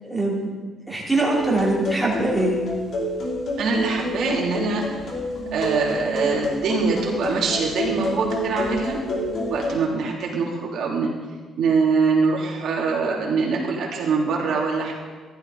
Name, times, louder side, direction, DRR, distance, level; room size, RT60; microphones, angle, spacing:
voice 1, 0.0-0.5 0.9-2.6, right 2 dB, 5° right, -4 dB, 3.1 m, -22 dB
sound 1, 1.3-9.8, left 1 dB, 50° left, 3.2 m, -28 dB
voice 2, 3.6-4.8 5.5-9.0 9.5-11.1 11.6-14.9, right 4 dB, 70° right, -2 dB, 2.9 m, -23 dB
14.5 x 12.0 x 4.1 m, 1.4 s
cardioid pair, 140°, 0 cm